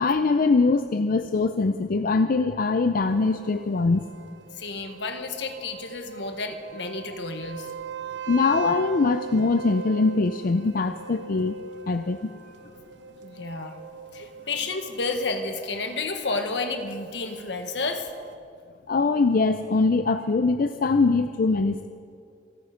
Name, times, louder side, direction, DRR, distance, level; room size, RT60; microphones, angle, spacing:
voice 1, 0.0-4.0 8.3-11.5 11.9-12.3 18.9-21.9, left 3 dB, 50° left, 9 dB, 0.5 m, -22 dB
sound 1, 3.1-18.4, right 6 dB, 70° right, 0.6 m, -41 dB
voice 2, 4.6-7.7 13.2-13.8 14.1-18.1, left 3 dB, 75° left, 6 dB, 1.4 m, -31 dB
27.5 x 9.3 x 5.1 m, 2.3 s
head